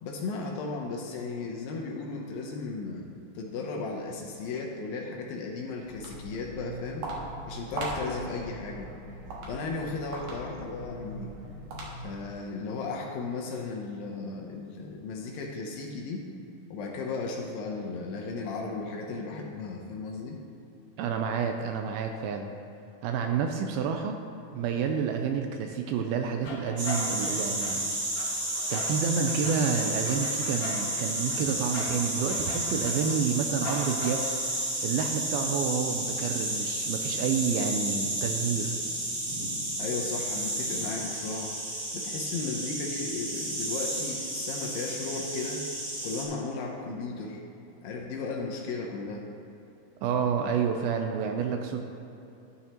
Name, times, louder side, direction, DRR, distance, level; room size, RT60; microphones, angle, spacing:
voice 1, 0.0-3.1 3.4-7.1 7.5-8.9 9.5-11.3 12.0-16.2 16.7-20.4 39.8-45.6 46.0-47.4 47.8-49.3, left 4 dB, 75° left, 0 dB, 2.3 m, -35 dB
Walk footsteps, 5.8-12.3, right 2 dB, 65° right, 2.6 m, -39 dB
voice 2, 21.0-22.5 23.0-24.2 24.5-27.9 28.7-34.3 34.8-38.8 50.0-51.8, right 6 dB, 80° right, 4 dB, 2.2 m, -29 dB
sound 1, 26.0-34.7, left 2 dB, 55° left, 2.4 m, -41 dB
sound 2, 26.8-46.2, right 1 dB, 45° right, 1.1 m, -32 dB
12.5 x 9.1 x 2.9 m, 2.9 s
omnidirectional pair, 4.6 m